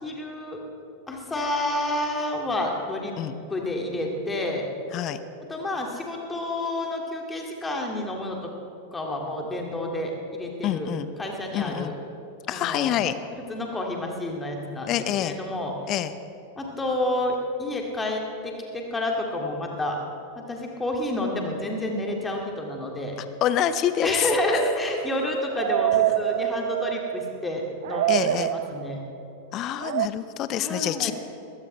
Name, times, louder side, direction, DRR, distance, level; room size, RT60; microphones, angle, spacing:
voice 1, 0.0-0.6 1.1-3.1 3.5-4.7 5.5-8.5 8.9-10.9 11.2-11.9 12.5-13.0 13.4-15.7 16.6-20.0 20.3-23.1 24.0-29.0 30.6-31.1, left 1 dB, 10° left, 1 dB, 2.4 m, -29 dB
voice 2, 10.6-11.1 11.5-11.9 12.5-13.2 14.9-15.4 15.9-16.1 23.2-24.6 28.1-28.5 29.5-31.1, left 10 dB, 35° left, 13 dB, 0.7 m, -26 dB
sound 1, 23.9-27.5 27.8-29.1 29.8-30.1, right 13 dB, 55° right, 0.4 m, -27 dB
21.5 x 16.5 x 3.4 m, 2.9 s
figure-of-eight pair, 90°, 0 cm